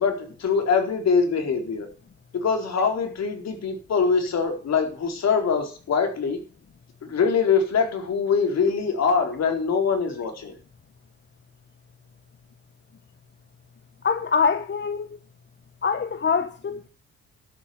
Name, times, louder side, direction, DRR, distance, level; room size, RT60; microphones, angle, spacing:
voice 1, 0.0-1.9 2.3-6.4 7.0-10.6, left 5 dB, 60° left, 4.4 m, -23 dB
voice 2, 14.0-15.2 15.8-16.9, left 5 dB, 35° left, 1.2 m, -24 dB
12.0 x 7.3 x 8.1 m
cardioid pair, 90°, 30 cm